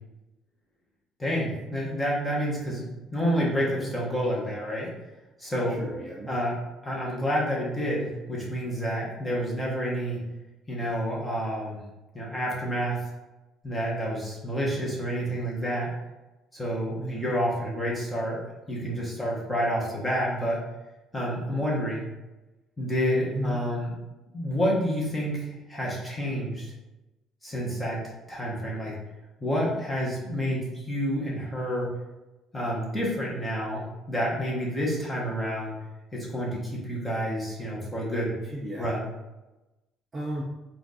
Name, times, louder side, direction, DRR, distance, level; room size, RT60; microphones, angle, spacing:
voice 1, 1.2-4.9 5.4-5.8 6.3-6.5 6.8-10.2 10.7-11.8 12.1-13.0 13.6-15.9 16.5-18.4 18.7-20.6 21.1-22.1 22.8-23.9 24.3-26.7 27.4-28.0 28.3-28.9 29.4-31.9 32.5-35.7 36.1-38.3 38.8-39.1, equal, 10° left, -5 dB, 1.2 m, -29 dB
voice 2, 5.7-6.3 17.0-17.3 23.3-23.6 38.4-38.9 40.1-40.4, equal, 20° right, -3 dB, 0.5 m, -34 dB
4.4 x 2.5 x 4.1 m, 1.0 s
cardioid pair, 150°, 0 cm